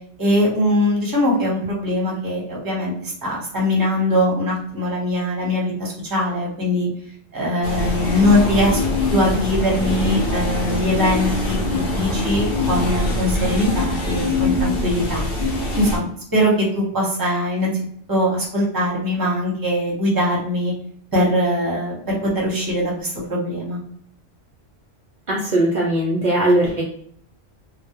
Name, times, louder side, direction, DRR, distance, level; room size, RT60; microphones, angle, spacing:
voice 1, 0.2-6.9 7.3-8.8 9.1-15.2 15.7-17.7 18.1-20.7 21.1-23.8, left 1 dB, 20° right, -3 dB, 0.6 m, -21 dB
sound 1, 7.6-16.0, left 2 dB, 60° left, 0.7 m, -23 dB
voice 2, 25.3-26.8, right 1 dB, 65° right, -3 dB, 0.4 m, -19 dB
2.2 x 2.0 x 2.8 m, 0.63 s
omnidirectional pair, 1.3 m